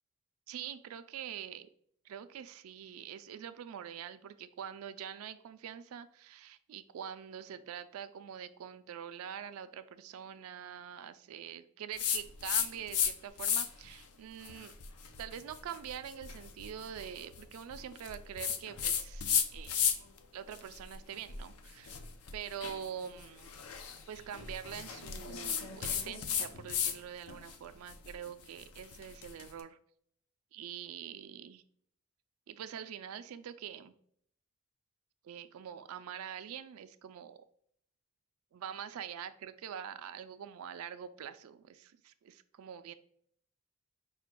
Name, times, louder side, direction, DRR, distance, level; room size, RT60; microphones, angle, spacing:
voice 1, 0.5-1.7 2.0-14.7 15.2-20.0 20.3-22.0 22.3-23.5 24.1-29.8 30.5-31.6 32.5-33.9 35.2-37.4 38.5-42.9, right 9 dB, 75° right, 10 dB, 0.3 m, -45 dB
sound 1, 12.0-13.1 13.4-13.9 14.4-20.2 20.5-27.0 27.3-29.5, left 7 dB, 85° left, 0.5 m, -35 dB
4.9 x 2.2 x 4.4 m, 0.65 s
head